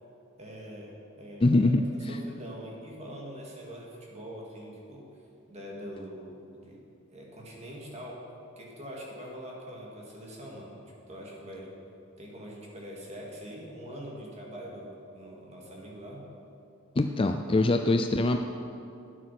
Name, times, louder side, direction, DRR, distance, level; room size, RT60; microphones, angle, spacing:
voice 1, 0.4-5.0 5.5-6.8 7.1-8.2 8.6-10.8 11.1-11.7 12.2-16.2, equal, 30° right, -2 dB, 2.2 m, -43 dB
voice 2, 1.4-2.1 17.0-18.4, left 2 dB, 25° left, 6 dB, 0.4 m, -24 dB
12.5 x 9.2 x 5.9 m, 2.7 s
head